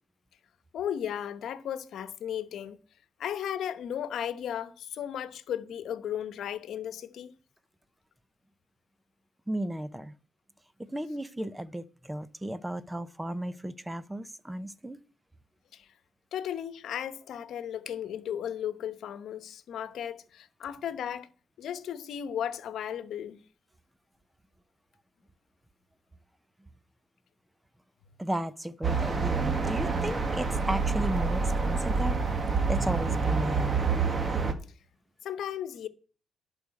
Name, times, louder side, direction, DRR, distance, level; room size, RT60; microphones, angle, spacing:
voice 1, 0.7-2.8 3.2-7.3 15.7-15.9 16.3-21.3 21.6-23.4 35.2-35.9, left 9 dB, 70° left, 1.0 m, -35 dB
voice 2, 9.5-10.1 10.9-15.0 28.2-32.2 32.7-33.9, right 1 dB, 10° right, 0.7 m, -34 dB
sound 1, 28.8-34.5, right 4 dB, 35° right, 1.6 m, -27 dB
11.0 x 5.1 x 8.4 m
cardioid pair, 90°, 0 cm